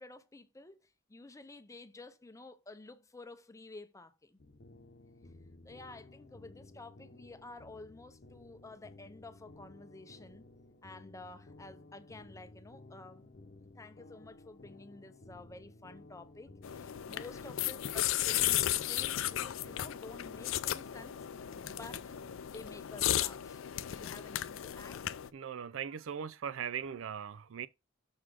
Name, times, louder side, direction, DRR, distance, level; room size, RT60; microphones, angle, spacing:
voice 1, 0.0-4.4 5.6-10.4 10.8-13.3 13.8-22.2 22.5-25.1, left 2 dB, 15° left, 0.6 m, -51 dB
sound 1, 4.4-22.4, left 2 dB, 50° left, 0.8 m, -55 dB
sound 2, 16.6-25.3, left 12 dB, 80° left, 0.4 m, -35 dB
voice 2, 25.3-27.7, right 8 dB, 75° right, 0.4 m, -39 dB
6.2 x 3.9 x 4.8 m
head